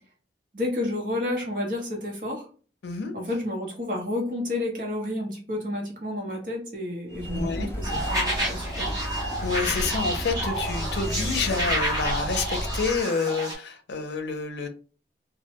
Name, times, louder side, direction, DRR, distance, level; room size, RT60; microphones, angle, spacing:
voice 1, 0.5-2.5 3.1-8.9, left 1 dB, 50° right, -1 dB, 0.9 m, -30 dB
voice 2, 2.8-3.2 7.3-7.7 9.4-14.7, left 4 dB, 80° left, 6 dB, 0.5 m, -28 dB
sound 1, 7.1-13.0, equal, 15° left, 0.4 m, -32 dB
sound 2, 7.8-13.5, right 1 dB, 20° right, 0.9 m, -30 dB
2.2 x 2.1 x 2.8 m, 0.39 s
head